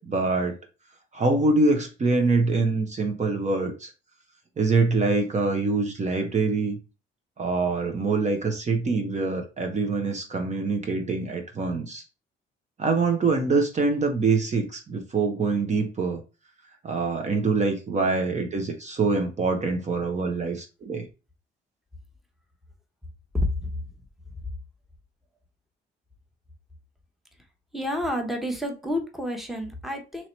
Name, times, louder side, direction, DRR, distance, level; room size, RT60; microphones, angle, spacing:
voice 1, 0.1-0.5 1.1-3.9 4.6-6.8 7.4-12.0 12.8-16.2 16.8-21.1, right 3 dB, 35° right, 4 dB, 0.7 m, -24 dB
voice 2, 23.3-23.7 27.7-30.3, left 1 dB, ahead, 3 dB, 0.9 m, -29 dB
3.0 x 2.9 x 4.3 m, 0.31 s
cardioid pair, 90°, 20 cm